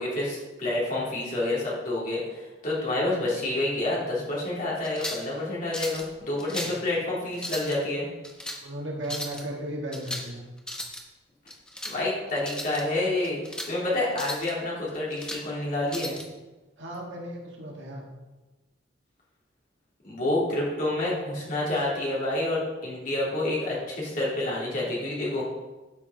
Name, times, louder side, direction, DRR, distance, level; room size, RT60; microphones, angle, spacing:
voice 1, 0.0-8.1 11.9-13.4 13.7-16.1 20.0-25.5, left 2 dB, 45° left, -6 dB, 3.0 m, -28 dB
sound 1, 4.8-5.3 5.7-6.1 6.4-6.8 7.3-7.8 8.2-8.6 9.0-9.4 9.9-10.3 10.6-11.0 11.5-12.0 12.4-12.8 13.2-13.7 14.1-14.5 14.9-15.4 15.9-16.3, left 1 dB, 5° left, 0.8 m, -36 dB
voice 2, 8.6-10.4 16.8-18.1, right 1 dB, 70° right, -1 dB, 1.8 m, -35 dB
12.0 x 5.3 x 4.0 m, 1.1 s
head